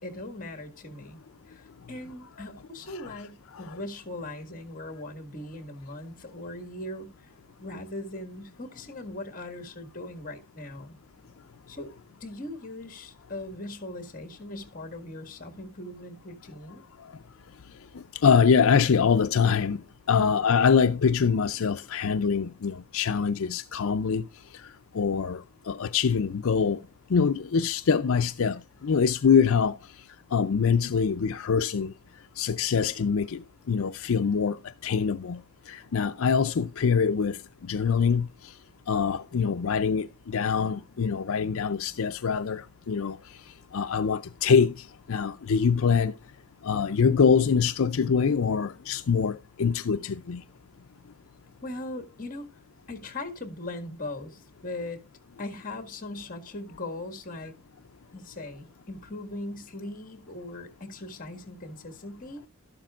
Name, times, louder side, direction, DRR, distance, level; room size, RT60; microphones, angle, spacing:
voice 1, 0.0-1.2 1.5-7.3 7.6-11.0 11.7-11.9 12.2-16.9 51.6-52.5 52.9-55.0 55.4-57.5 58.1-62.5, left 2 dB, 40° left, 1.7 m, -39 dB
voice 2, 17.9-19.8 20.1-24.3 24.5-26.8 27.1-29.8 30.3-31.9 32.4-33.4 33.7-35.4 35.7-38.5 38.9-43.2 43.7-46.1 46.6-50.4, left 6 dB, 70° left, 0.5 m, -24 dB
13.0 x 12.0 x 2.4 m
head